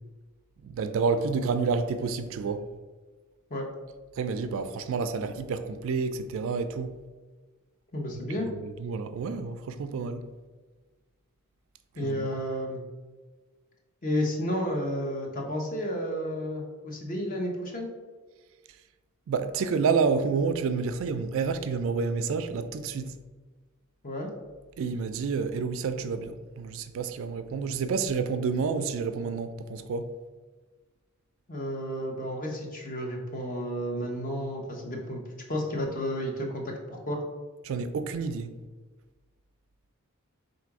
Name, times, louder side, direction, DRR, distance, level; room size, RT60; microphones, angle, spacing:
voice 1, 0.6-2.6 4.2-7.0 8.6-10.3 12.0-12.4 19.3-23.2 24.8-30.1 37.6-38.5, right 5 dB, 65° right, 0.3 m, -29 dB
voice 2, 7.9-8.5 12.0-12.8 14.0-17.9 24.0-24.3 31.5-35.2 35.5-37.2, equal, 40° left, 0.8 m, -32 dB
3.8 x 2.5 x 4.6 m
head